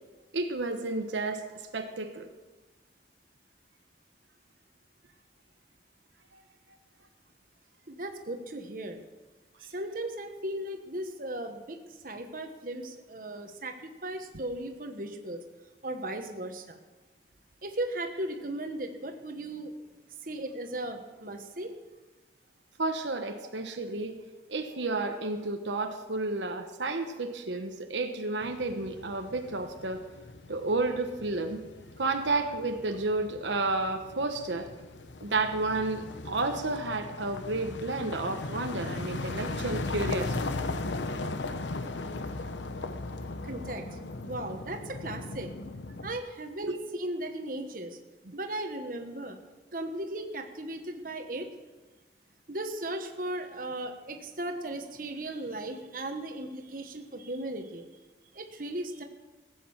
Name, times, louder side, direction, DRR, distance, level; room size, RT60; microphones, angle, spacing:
voice 1, 0.3-1.4 1.7-2.3 22.8-24.1 24.5-30.0 30.5-31.6 32.0-34.7 35.2-40.4 46.6-46.8, right 2 dB, 80° right, 6 dB, 1.1 m, -31 dB
voice 2, 7.9-9.0 9.6-11.8 12.0-15.4 15.8-16.8 17.6-19.7 20.2-21.7 43.4-43.8 44.3-45.5 46.0-48.0 48.3-49.4 49.7-51.5 52.5-57.8 58.3-59.0, right 1 dB, 50° right, 5 dB, 1.2 m, -36 dB
sound 1, 28.4-46.2, left 2 dB, 80° left, 0.9 m, -38 dB
16.0 x 8.5 x 7.2 m, 1.2 s
head